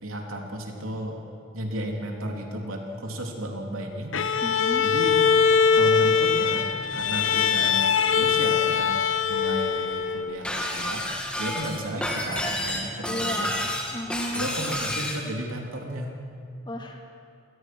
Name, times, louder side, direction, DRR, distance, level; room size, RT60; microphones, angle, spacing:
voice 1, 0.0-1.2 1.5-4.2 4.8-5.2 5.7-9.0 9.3-11.1 11.4-13.5 14.3-16.2, right 1 dB, 90° right, 1 dB, 3.3 m, -33 dB
Bowed string instrument, 4.1-10.4, left 6 dB, 70° left, 0.8 m, -22 dB
voice 2, 4.4-4.9 13.1-13.7 13.9-14.5 16.7-17.0, left 1 dB, 20° left, 2 dB, 2.3 m, -34 dB
Shatter, 10.4-15.2, left 1 dB, 5° left, 2.3 m, -30 dB
27.0 x 20.0 x 6.2 m, 2.5 s
head